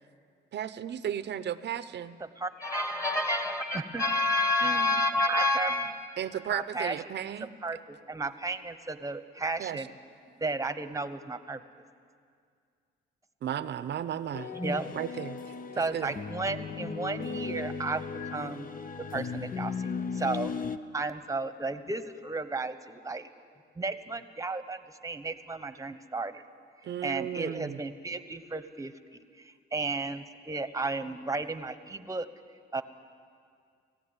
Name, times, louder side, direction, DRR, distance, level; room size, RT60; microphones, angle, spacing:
voice 1, 0.5-2.2 6.2-7.5 9.6-9.8 13.4-14.5 14.9-15.4 15.7-16.1 26.8-27.8, right 10 dB, 60° right, 13 dB, 0.7 m, -34 dB
voice 2, 2.6-5.9 14.6-14.9, left 2 dB, 15° left, 5 dB, 2.0 m, -27 dB
voice 3, 4.6-5.0 5.3-5.7 6.5-6.9 7.6-9.9 10.4-11.6 14.6-14.8 15.7-18.7 19.0-20.6 20.9-23.3 23.8-26.4 27.0-28.9 29.4-32.3 32.7-32.8, right 3 dB, 15° right, 11 dB, 1.1 m, -34 dB
sound 1, 14.3-20.8, left 5 dB, 45° left, 0.8 m, -36 dB
18.5 x 15.5 x 9.7 m, 2.2 s
cardioid pair, 90°, 20 cm